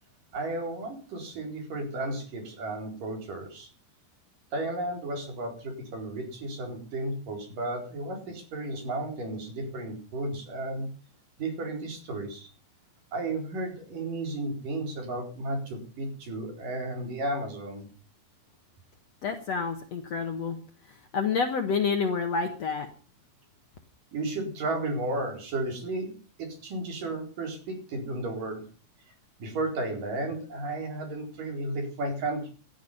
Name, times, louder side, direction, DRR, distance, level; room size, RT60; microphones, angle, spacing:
voice 1, 0.3-3.7 4.5-10.9 11.4-12.5 13.1-17.9 24.1-28.6 29.4-32.5, right 2 dB, 60° right, 2 dB, 5.8 m, -33 dB
voice 2, 19.2-20.6 21.1-22.9, left 5 dB, 55° left, 5 dB, 2.1 m, -28 dB
17.5 x 12.5 x 5.6 m, 0.39 s
omnidirectional pair, 4.3 m